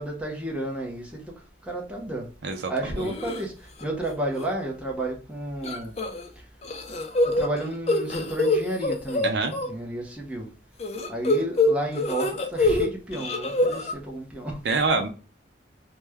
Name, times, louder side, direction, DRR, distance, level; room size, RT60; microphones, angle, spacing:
voice 1, 0.0-1.3 1.6-2.3 2.7-5.9 7.2-9.3 9.6-10.5 11.1-14.6, right 1 dB, 5° right, 0.8 m, -32 dB
sound 1, 3.0-3.4 3.8-4.1 4.4-4.5 5.6-6.3 6.6-9.7 10.8-12.9 13.1-13.9, left 2 dB, 35° left, 0.5 m, -25 dB
voice 2, 14.6-15.1, right 3 dB, 65° right, 0.5 m, -25 dB
3.2 x 2.2 x 3.4 m
head